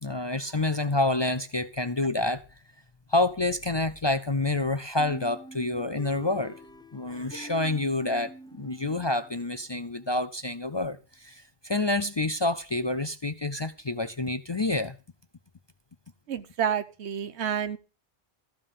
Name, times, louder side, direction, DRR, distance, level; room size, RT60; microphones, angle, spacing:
voice 1, 0.0-2.4 3.1-6.6 6.9-15.0, left 2 dB, 35° left, 0.5 m, -28 dB
sound 1, 5.0-9.6, right 1 dB, 5° left, 0.8 m, -46 dB
voice 2, 16.3-17.8, right 8 dB, 85° right, 1.1 m, -29 dB
14.5 x 5.5 x 6.9 m
omnidirectional pair, 1.1 m